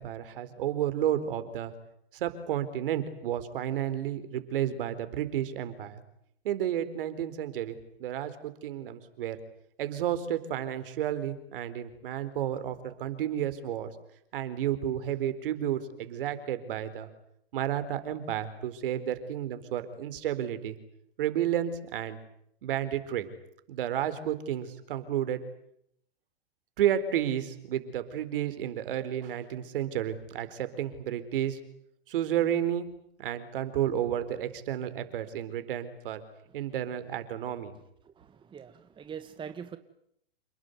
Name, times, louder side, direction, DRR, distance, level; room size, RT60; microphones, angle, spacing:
voice 1, 0.0-1.7 2.1-6.0 6.4-9.4 9.8-13.9 14.3-17.1 17.5-20.8 21.2-22.2 22.6-23.3 23.7-25.4 26.8-31.6 32.1-32.9 33.2-36.2 36.5-37.7, right 10 dB, 60° right, 4.2 m, -31 dB
voice 2, 38.0-39.8, right 7 dB, 15° right, 1.5 m, -43 dB
29.0 x 20.5 x 9.6 m
hypercardioid pair, 120°, 31 cm